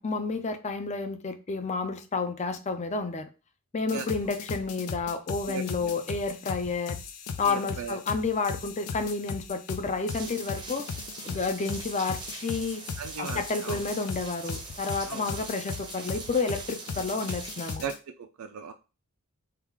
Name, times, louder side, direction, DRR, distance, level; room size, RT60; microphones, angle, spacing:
voice 1, 0.0-3.3 3.7-7.0 7.4-10.9 11.2-12.8 13.2-17.8, left 4 dB, 30° left, 0.5 m, -30 dB
sound 1, 3.9-18.0, left 5 dB, 85° left, 0.5 m, -38 dB
voice 2, 5.5-5.9 7.4-8.0 13.0-13.8 15.1-15.3 17.8-18.7, right 6 dB, 75° right, 0.4 m, -37 dB
sound 2, 10.1-17.8, right 3 dB, 20° right, 0.6 m, -42 dB
3.7 x 2.4 x 4.5 m
head